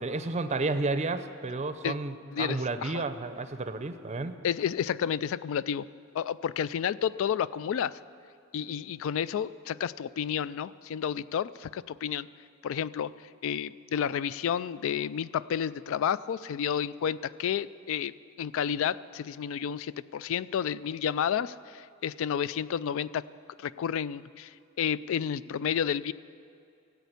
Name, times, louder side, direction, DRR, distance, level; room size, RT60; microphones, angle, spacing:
voice 1, 0.0-4.3, right 3 dB, 30° right, 10 dB, 0.6 m, -31 dB
voice 2, 2.3-3.0 4.4-5.9 6.1-8.0 8.5-12.3 12.6-23.2 23.6-26.1, left 8 dB, 65° left, 18 dB, 0.3 m, -31 dB
14.0 x 8.2 x 8.1 m, 2.5 s
head